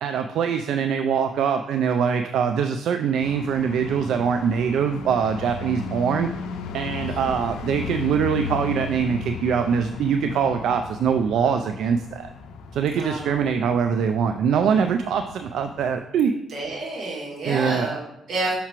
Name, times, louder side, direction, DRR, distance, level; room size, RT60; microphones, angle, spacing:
voice 1, 0.0-6.3 6.7-12.3 12.7-16.4 17.5-18.0, right 7 dB, 75° right, 7 dB, 0.3 m, -23 dB
sound 1, 3.2-15.9, left 5 dB, 85° left, 0.5 m, -36 dB
voice 2, 6.9-7.3 13.0-13.4 16.5-18.6, right 2 dB, 60° right, -3 dB, 1.9 m, -30 dB
5.8 x 5.6 x 3.0 m, 0.86 s
cardioid pair, 90°, 0 cm